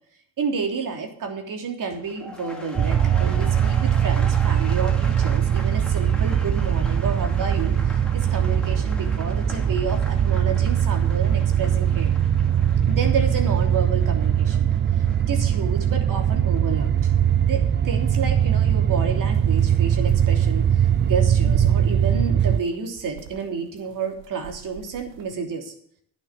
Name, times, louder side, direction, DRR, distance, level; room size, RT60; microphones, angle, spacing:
voice 1, 0.4-12.1 12.9-14.7 15.0-17.1 17.4-25.7, right 5 dB, 55° right, 3 dB, 3.1 m, -30 dB
sound 1, 1.9-18.0 18.3-18.7, left 1 dB, ahead, 2.8 m, -41 dB
sound 2, 2.8-22.6, right 9 dB, 30° right, 0.6 m, -21 dB
sound 3, 19.3-19.6 19.9-21.0 21.4-22.0 22.4-23.4 23.9-24.0 24.2-25.3, right 11 dB, 90° right, 1.3 m, -31 dB
11.0 x 6.8 x 8.0 m, 0.63 s
supercardioid pair, 70°, 39 cm